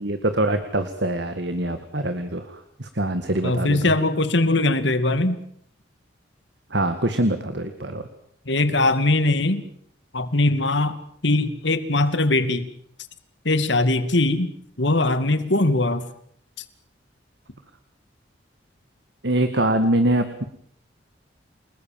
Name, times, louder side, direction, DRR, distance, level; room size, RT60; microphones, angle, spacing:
voice 1, 0.0-3.9 6.7-8.1 19.2-20.4, right 1 dB, 60° right, 8 dB, 2.0 m, -24 dB
voice 2, 3.4-5.4 8.5-9.6 10.1-12.7 13.4-14.5 14.8-16.1, left 2 dB, 65° left, 11 dB, 2.4 m, -21 dB
29.5 x 20.0 x 7.6 m, 0.65 s
head